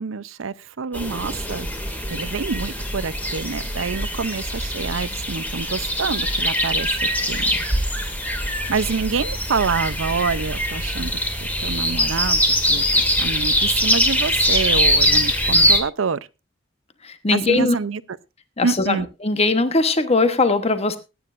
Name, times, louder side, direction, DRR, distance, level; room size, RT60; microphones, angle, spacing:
voice 1, 0.0-1.7 2.1-6.9 7.3-7.5 8.4-12.4 12.7-12.8 13.2-16.2 17.3-18.0 18.6-19.1, right 5 dB, 80° right, 0.6 m, -27 dB
sound 1, 0.9-15.8, equal, 10° left, 2.2 m, -22 dB
voice 2, 17.0-17.8 18.6-21.0, left 3 dB, 30° left, 1.1 m, -20 dB
21.0 x 9.6 x 2.5 m
head